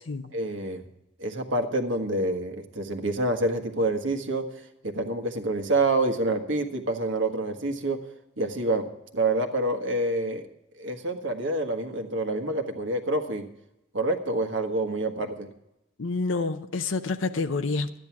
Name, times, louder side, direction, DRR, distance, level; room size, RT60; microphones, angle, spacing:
voice 1, 0.3-0.8 1.2-4.4 4.8-8.0 8.4-8.9 9.1-10.5 10.8-13.5 13.9-15.5, right 2 dB, 65° right, 5 dB, 1.5 m, -27 dB
voice 2, 16.0-17.9, left 3 dB, 70° left, 9 dB, 0.7 m, -28 dB
13.0 x 10.0 x 5.9 m, 0.89 s
head